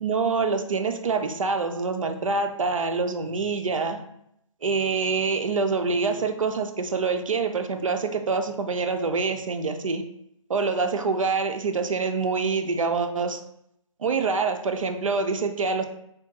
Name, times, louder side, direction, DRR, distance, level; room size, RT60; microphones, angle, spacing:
voice 1, 0.0-4.0 4.6-10.0 10.5-13.4 14.0-15.8, right 4 dB, 70° right, 6 dB, 0.5 m, -26 dB
3.5 x 2.6 x 2.8 m, 0.76 s
figure-of-eight pair, 150°, 18 cm